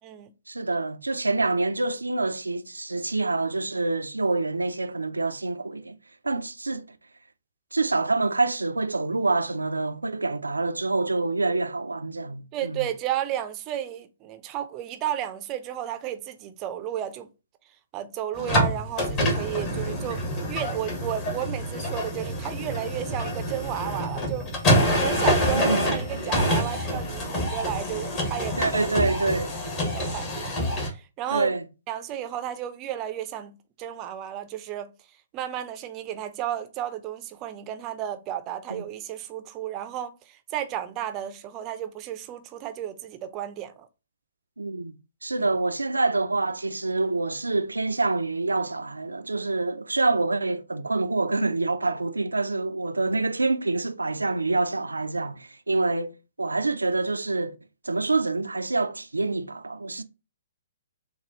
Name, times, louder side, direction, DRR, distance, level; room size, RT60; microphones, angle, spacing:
voice 1, 0.5-6.0 6.2-6.9 7.7-12.9 25.5-25.9 28.6-29.5 31.3-31.6 38.7-38.8 44.6-45.0 45.2-57.5 57.8-60.0, right 3 dB, 80° right, 0.5 m, -26 dB
voice 2, 12.5-17.3 17.9-20.2 20.5-24.5 24.9-28.9 29.9-31.6 31.9-34.9 35.3-43.9 45.4-45.5, right 11 dB, 25° right, 0.5 m, -33 dB
sound 1, 18.3-30.9, equal, 30° left, 1.4 m, -26 dB
6.8 x 2.4 x 2.9 m
figure-of-eight pair, 120°, 0 cm